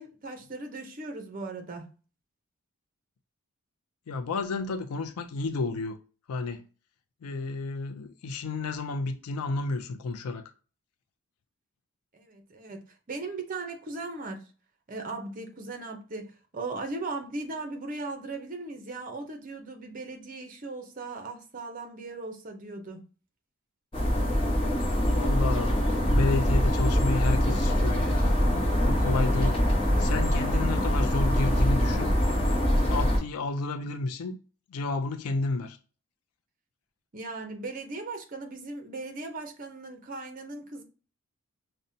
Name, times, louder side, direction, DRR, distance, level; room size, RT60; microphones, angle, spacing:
voice 1, 0.0-1.9 12.1-14.4 14.9-23.1 37.1-40.8, right 3 dB, 40° right, 0.6 m, -38 dB
voice 2, 4.1-6.0 6.3-6.6 7.2-10.5 25.1-25.9 26.1-28.4 28.8-29.6 30.0-32.1 32.9-34.4 34.7-35.8, left 3 dB, 90° left, 0.4 m, -31 dB
sound 1, 23.9-33.2, equal, 25° left, 0.8 m, -24 dB
5.2 x 2.1 x 2.6 m
head